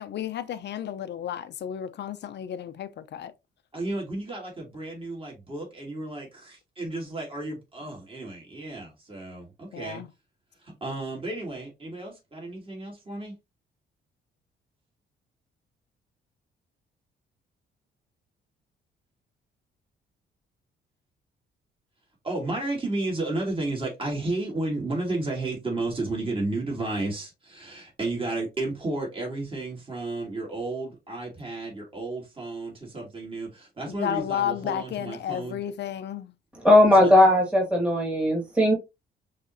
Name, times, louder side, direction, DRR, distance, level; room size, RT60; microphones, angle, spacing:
voice 1, 0.0-3.3 9.7-10.1 34.0-36.3, left 10 dB, 60° left, 0.7 m, -32 dB
voice 2, 3.7-10.0 10.6-13.3 22.2-35.6 37.0-37.1, right 2 dB, 25° right, 2.8 m, -32 dB
voice 3, 36.5-38.7, left 1 dB, 5° right, 2.0 m, -18 dB
5.8 x 3.2 x 2.7 m
cardioid pair, 90°, 20 cm